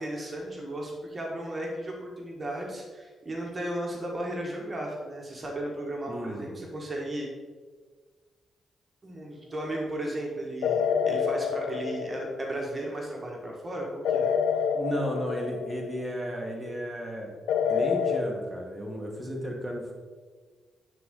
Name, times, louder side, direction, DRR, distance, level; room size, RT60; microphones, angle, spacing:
voice 1, 0.0-7.3 9.0-14.3, right 1 dB, 30° right, -1 dB, 1.5 m, -35 dB
voice 2, 6.1-6.7 14.7-17.3 17.7-19.9, equal, 10° right, -2 dB, 1.5 m, -34 dB
sound 1, 10.6-12.7 14.1-16.1 17.5-18.2, left 7 dB, 90° left, 0.3 m, -27 dB
9.2 x 3.8 x 3.8 m, 1.5 s
cardioid pair, 70°, 0 cm